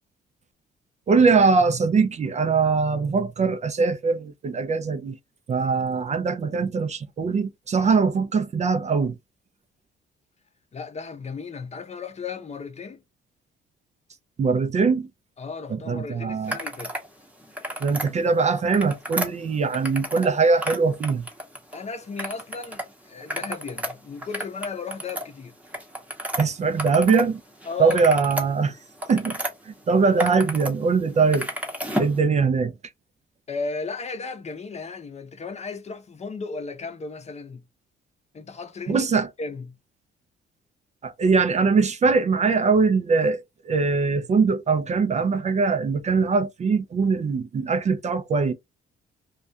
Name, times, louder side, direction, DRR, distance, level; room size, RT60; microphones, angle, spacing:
voice 1, 1.1-5.2 5.5-9.1 14.4-15.1 15.7-16.6 17.8-21.3 26.4-27.4 27.8-28.7 29.1-29.4 29.7-31.5 32.0-32.7 38.9-39.3 41.0-48.5, right 4 dB, 35° right, 0.4 m, -22 dB
voice 2, 10.7-13.0 15.4-16.9 21.7-25.5 27.7-28.0 33.5-37.6 38.3-39.0 39.4-39.7, left 4 dB, 35° left, 0.6 m, -35 dB
sound 1, 16.5-17.1 17.4-18.1 18.6-20.3 20.6-21.8 22.2-22.8 23.2-27.3 27.6-29.5 30.0-30.7 31.0-32.2, equal, 5° right, 0.8 m, -32 dB
2.3 x 2.2 x 2.6 m
cardioid pair, 90°, 20 cm